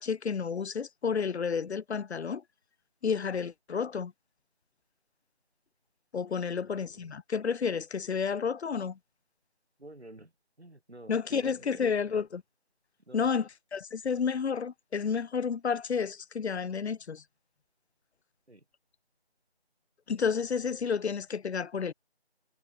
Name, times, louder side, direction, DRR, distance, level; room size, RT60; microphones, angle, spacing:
voice 1, 0.0-2.4 3.0-4.1 6.1-9.0 11.1-12.4 13.1-17.2 20.1-21.9, left 6 dB, 85° left, 0.6 m, -31 dB
voice 2, 6.5-7.1 9.8-10.3 10.6-11.8 13.0-13.4 18.5-18.7, right 1 dB, 85° right, 5.9 m, -51 dB
figure-of-eight pair, 175°, 32 cm